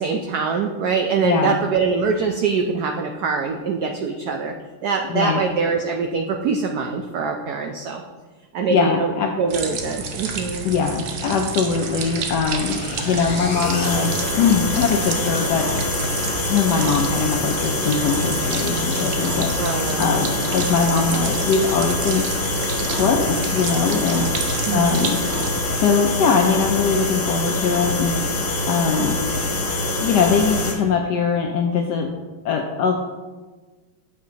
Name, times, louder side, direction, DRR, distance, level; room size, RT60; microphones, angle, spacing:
voice 1, 0.0-4.5 4.8-8.0 8.5-9.1 9.4-10.7 19.6-20.0 24.7-25.1, right 5 dB, 85° right, 3 dB, 0.8 m, -23 dB
voice 2, 1.2-1.6 5.1-5.4 8.7-9.3 10.6-15.7 16.5-22.2 22.9-25.2 25.7-29.2 30.0-32.1 32.4-33.0, left 5 dB, 80° left, 3 dB, 0.9 m, -21 dB
sound 1, 9.5-25.6, right 5 dB, 70° right, 1.5 m, -31 dB
sound 2, 11.8-30.7, left 2 dB, 50° left, 1.5 m, -25 dB
8.6 x 6.0 x 2.8 m, 1.3 s
omnidirectional pair, 2.3 m